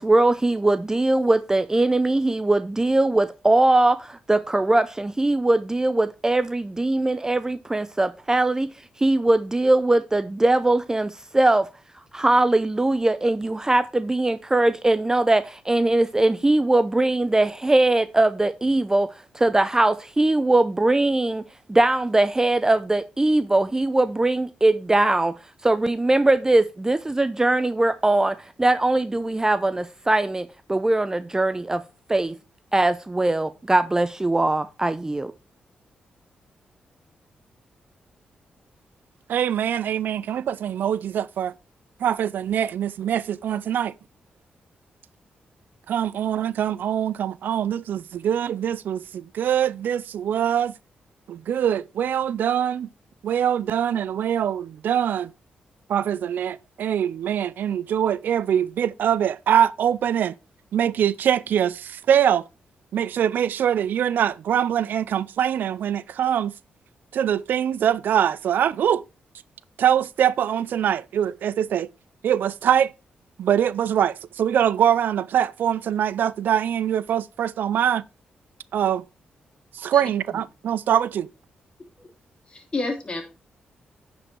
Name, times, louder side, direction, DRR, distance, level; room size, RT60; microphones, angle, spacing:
voice 1, 0.0-8.7 9.0-11.7 12.1-19.1 19.3-21.4 21.7-25.3 25.6-31.8 32.1-32.3 32.7-35.3, right 2 dB, 20° right, 0.5 m, -21 dB
voice 2, 39.3-41.5 42.0-43.9 45.9-50.7 51.3-52.9 53.2-55.3 55.9-60.3 60.7-62.4 62.9-66.5 67.1-69.0 69.8-71.9 72.2-72.9 73.4-78.0 78.7-79.0 79.8-81.3, right 9 dB, 75° right, 0.4 m, -23 dB
voice 3, 82.5-83.2, left 3 dB, 30° left, 3.0 m, -30 dB
9.6 x 5.2 x 4.4 m
cardioid pair, 65°, 3 cm